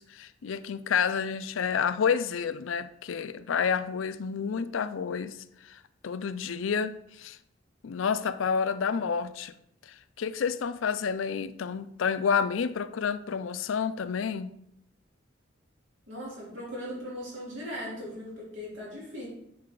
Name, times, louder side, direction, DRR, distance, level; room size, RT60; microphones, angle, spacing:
voice 1, 0.0-7.4 7.8-9.5 9.9-14.5, left 6 dB, 80° left, 13 dB, 0.4 m, -29 dB
voice 2, 16.1-19.3, equal, 70° right, -5 dB, 3.2 m, -38 dB
9.8 x 4.8 x 3.8 m, 0.76 s
head